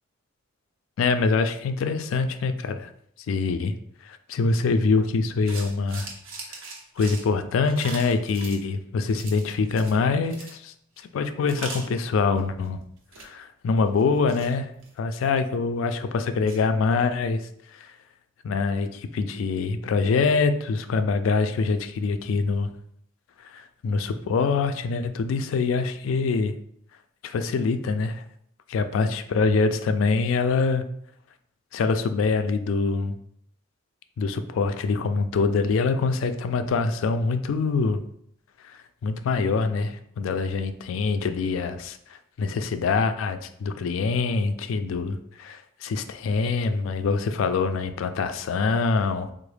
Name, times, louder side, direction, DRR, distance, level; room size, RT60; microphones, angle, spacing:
voice 1, 1.0-2.9 3.3-3.7 4.0-6.1 7.0-10.7 11.1-12.8 13.2-14.7 15.0-17.4 17.8-17.9 18.4-22.7 23.5-26.5 27.2-28.2 28.7-30.8 31.7-33.2 34.2-38.0 39.0-42.0 42.4-49.3, left 4 dB, 80° left, 9 dB, 0.3 m, -24 dB
sound 1, 5.5-8.6 9.1-10.0 10.2-10.6 11.0-11.1 11.5-12.7 13.0-13.3 13.9-15.6 16.0-16.1 16.5-16.6, right 4 dB, 85° right, 0.7 m, -40 dB
3.8 x 2.0 x 3.2 m, 0.69 s
head